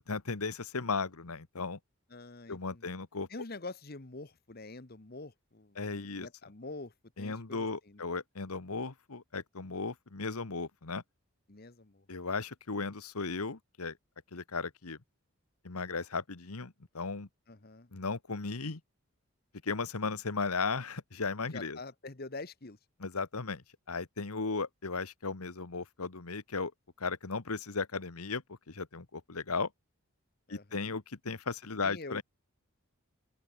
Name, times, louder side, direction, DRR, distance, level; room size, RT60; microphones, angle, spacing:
voice 1, 0.1-1.8 2.5-3.3 5.8-6.3 7.2-11.0 12.1-14.0 14.3-15.0 15.6-17.3 17.9-18.8 19.6-21.8 23.0-26.7 27.0-29.7 30.5-32.2, left 4 dB, 85° left, 1.4 m, -36 dB
voice 2, 2.1-2.9 3.3-8.0 11.5-12.1 17.5-17.9 21.5-22.8 30.5-30.9 31.8-32.2, left 3 dB, 45° left, 1.2 m, -46 dB
open air
head